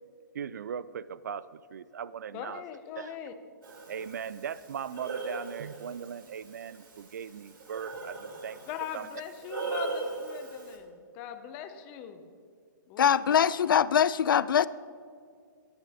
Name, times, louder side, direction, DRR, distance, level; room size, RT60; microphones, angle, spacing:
voice 1, 0.3-2.6 3.0-3.2 3.9-8.6 8.9-9.1, right 7 dB, 55° right, 0.4 m, -39 dB
voice 2, 2.3-3.3 8.7-12.2 12.9-13.4, left 8 dB, 15° left, 0.4 m, -41 dB
Breathing, 3.6-10.8, right 3 dB, 90° right, 3.3 m, -40 dB
voice 3, 13.0-14.7, left 8 dB, 85° left, 0.4 m, -23 dB
20.0 x 10.5 x 2.8 m
hypercardioid pair, 180°, 11 cm